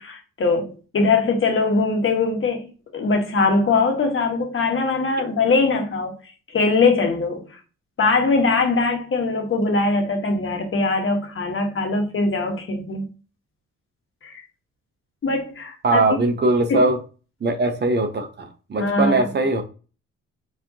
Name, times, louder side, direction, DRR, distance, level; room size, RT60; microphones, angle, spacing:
voice 1, 0.0-6.1 6.5-7.6 8.0-13.1 14.2-14.4 15.2-16.2 16.7-16.8 18.8-19.3, left 3 dB, 45° left, 1.3 m, -21 dB
voice 2, 15.8-17.0 17.4-19.6, right 2 dB, 35° right, 0.7 m, -20 dB
4.7 x 2.8 x 2.8 m
cardioid pair, 90°, 30 cm